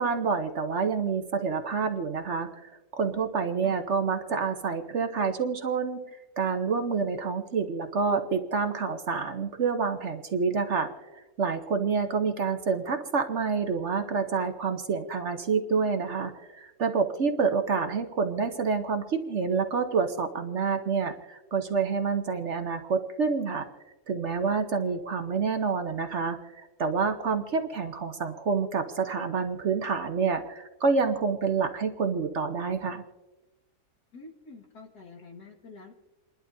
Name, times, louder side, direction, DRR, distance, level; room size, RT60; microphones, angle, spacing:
voice 1, 0.0-6.0 6.4-23.7 24.1-33.0, right 5 dB, 50° right, 6 dB, 1.0 m, -28 dB
voice 2, 34.1-35.9, left 4 dB, 75° left, 0 dB, 2.3 m, -48 dB
29.0 x 11.5 x 2.7 m, 1.1 s
omnidirectional pair, 1.7 m